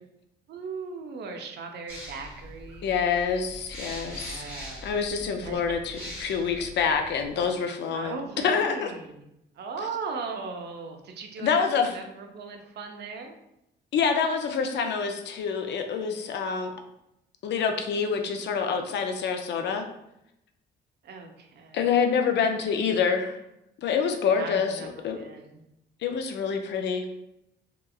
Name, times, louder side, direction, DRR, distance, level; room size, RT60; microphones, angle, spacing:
voice 1, 0.5-2.9 4.0-4.9 5.4-5.6 6.0-6.1 7.9-9.3 9.6-13.4 21.0-22.1 24.4-25.6, right 4 dB, 60° right, 4 dB, 0.5 m, -38 dB
sound 1, 1.9-7.5, equal, 10° left, 1.0 m, -42 dB
voice 2, 2.8-4.4 4.8-8.2 8.4-8.9 11.4-11.9 13.9-16.7 17.4-19.9 21.7-23.3 23.8-25.2 26.0-27.1, left 6 dB, 65° left, 5 dB, 0.4 m, -26 dB
2.8 x 2.4 x 2.3 m, 0.84 s
cardioid pair, 90°, 20 cm